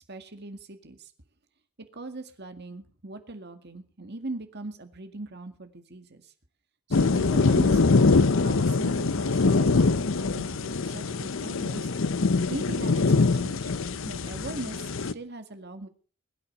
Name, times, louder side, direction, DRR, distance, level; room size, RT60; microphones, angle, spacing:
voice 1, 0.1-1.1 1.9-6.3 6.9-8.0 8.4-11.9 12.5-13.7 14.1-15.9, right 2 dB, 50° right, 7 dB, 2.0 m, -40 dB
sound 1, 6.9-15.1, left 3 dB, 65° left, 0.7 m, -23 dB
21.5 x 8.8 x 6.7 m, 0.42 s
head